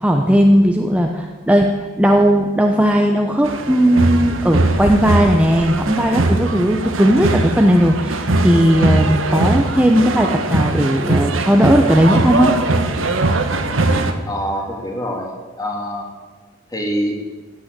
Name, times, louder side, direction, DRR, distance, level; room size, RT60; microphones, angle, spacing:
voice 1, 0.0-1.7 2.0-12.5, equal, 5° right, 2 dB, 0.9 m, -16 dB
sound 1, 3.4-14.1, right 2 dB, 90° right, 1.4 m, -20 dB
voice 2, 14.3-16.1 16.7-17.1, equal, 20° left, 0 dB, 3.0 m, -25 dB
16.0 x 9.6 x 8.2 m, 1.3 s
head